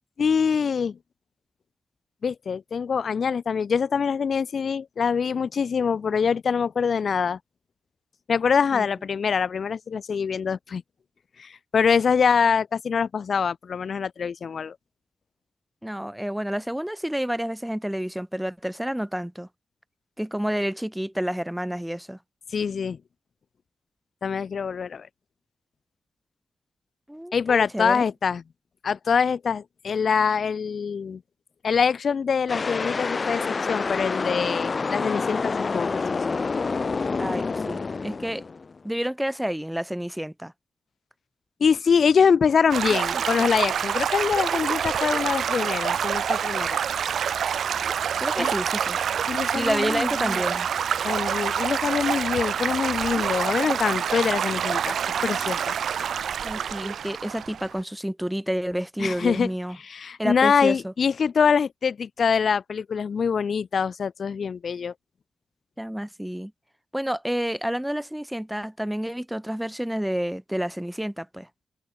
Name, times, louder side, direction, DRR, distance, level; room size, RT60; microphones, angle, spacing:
voice 1, 0.2-1.0 2.2-7.4 8.3-10.8 11.4-14.7 22.5-23.0 24.2-25.1 27.3-28.4 28.8-31.2 31.6-36.0 41.6-46.8 48.4-48.5 49.3-50.4 51.0-55.0 55.2-55.8 59.0-59.5 59.8-64.9, left 6 dB, 65° left, 6.8 m, -24 dB
voice 2, 15.8-19.5 20.2-22.2 27.1-28.0 37.2-38.4 38.8-40.5 43.1-43.5 48.2-49.0 49.5-50.7 56.4-59.8 60.2-60.9 65.8-66.5 66.9-71.5, equal, 5° right, 5.0 m, -29 dB
sound 1, 32.5-38.8, left 4 dB, 45° left, 3.0 m, -27 dB
Stream / Gurgling / Trickle dribble, 42.7-57.8, right 8 dB, 80° right, 1.9 m, -27 dB
cardioid pair, 65°, 0 cm